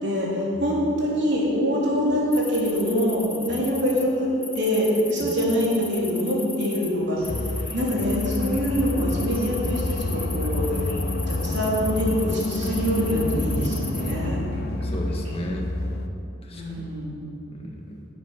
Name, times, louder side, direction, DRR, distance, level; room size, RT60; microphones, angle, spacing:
voice 1, 0.0-10.9 11.3-14.4 16.5-17.2, equal, 55° right, -4 dB, 3.5 m, -24 dB
sound 1, 2.3-4.0 4.4-6.9 7.2-14.1, left 3 dB, 5° left, 0.6 m, -38 dB
sound 2, 7.2-15.9, equal, 70° right, 3.7 m, -43 dB
sound 3, 7.3-16.1, left 2 dB, 45° left, 0.7 m, -29 dB
voice 2, 14.8-15.7 16.4-16.9 17.5-18.0, equal, 25° left, 1 dB, 1.6 m, -35 dB
12.0 x 8.5 x 9.7 m, 2.8 s
head